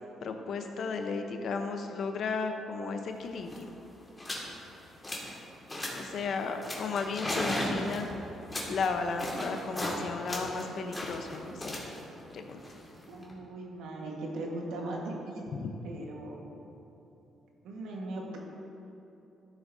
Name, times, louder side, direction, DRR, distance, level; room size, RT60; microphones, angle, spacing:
voice 1, 0.2-3.7 6.0-8.1 8.7-11.8 12.3-12.6 15.6-15.7, left 4 dB, 60° left, 5 dB, 0.8 m, -34 dB
sound 1, 3.1-3.2 3.4-3.7 4.2-4.5 4.8-5.4 5.7-6.1 6.6-10.0 10.3-13.3, left 1 dB, 20° left, 2.0 m, -36 dB
voice 2, 13.1-16.4 17.6-18.4, right 2 dB, 85° right, -1 dB, 1.4 m, -39 dB
13.0 x 7.4 x 2.7 m, 3.0 s
cardioid pair, 90°, 0 cm